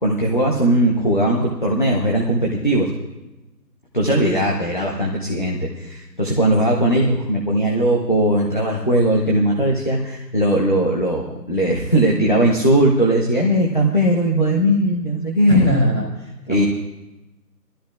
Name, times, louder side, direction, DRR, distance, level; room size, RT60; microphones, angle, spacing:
voice 1, 0.0-2.9 3.9-15.7 16.5-16.6, right 1 dB, 30° left, -2 dB, 0.8 m, -19 dB
voice 2, 15.5-16.7, right 1 dB, 15° left, -7 dB, 1.9 m, -21 dB
21.5 x 12.5 x 2.4 m, 1.0 s
figure-of-eight pair, 165°, 49 cm